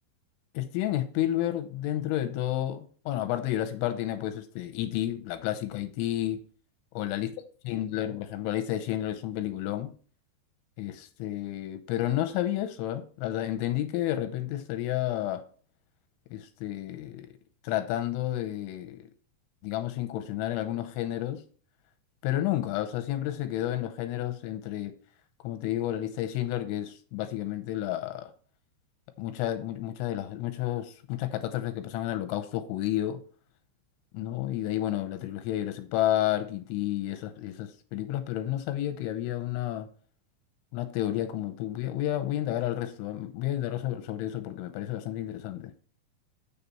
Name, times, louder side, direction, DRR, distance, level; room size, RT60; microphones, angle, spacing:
voice 1, 0.5-6.4 6.9-7.3 7.7-9.9 10.8-15.4 16.3-17.3 17.6-19.0 19.6-21.4 22.2-24.9 25.4-28.3 29.2-33.2 34.1-39.9 40.7-45.7, left 13 dB, 90° left, 3.1 m, -31 dB
7.4 x 6.8 x 4.2 m
omnidirectional pair, 5.5 m